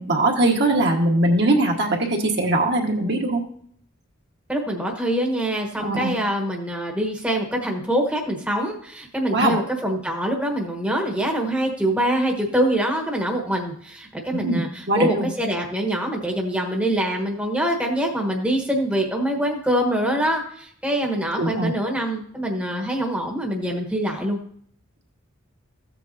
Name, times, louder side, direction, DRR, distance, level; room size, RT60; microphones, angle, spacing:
voice 1, 0.0-3.4 5.8-6.1 9.3-9.6 14.3-15.3 21.4-21.7, right 2 dB, 50° right, 1 dB, 1.5 m, -21 dB
voice 2, 4.5-24.4, right 1 dB, 5° right, 1 dB, 1.1 m, -24 dB
14.5 x 8.1 x 2.7 m, 0.63 s
head